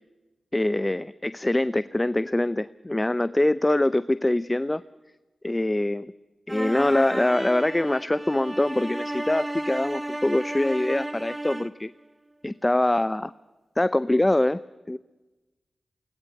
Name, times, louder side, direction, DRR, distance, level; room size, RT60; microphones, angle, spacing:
voice 1, 0.5-4.8 5.4-6.1 6.5-11.9 12.4-13.3 13.8-14.6 14.9-15.0, left 1 dB, 20° left, 17 dB, 0.6 m, -24 dB
sound 1, 6.5-11.8, right 1 dB, 20° right, 0.9 m, -33 dB
21.0 x 19.5 x 7.8 m, 1.2 s
cardioid pair, 40°, 0 cm